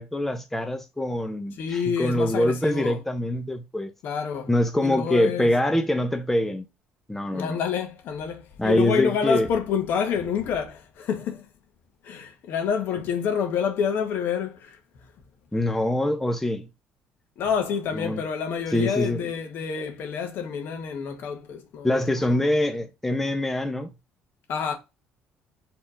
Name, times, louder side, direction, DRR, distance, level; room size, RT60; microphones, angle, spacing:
voice 1, 0.0-3.9 4.5-6.6 7.1-7.6 8.6-9.5 15.5-16.7 17.9-18.2 18.7-19.2 21.8-23.9, left 1 dB, 5° left, 0.8 m, -24 dB
voice 2, 1.6-3.0 4.0-4.5 4.8-5.5 7.3-11.5 12.0-14.8 17.4-22.4 24.5-24.7, left 7 dB, 65° left, 1.7 m, -28 dB
5.0 x 3.7 x 5.0 m
cardioid pair, 105°, 4 cm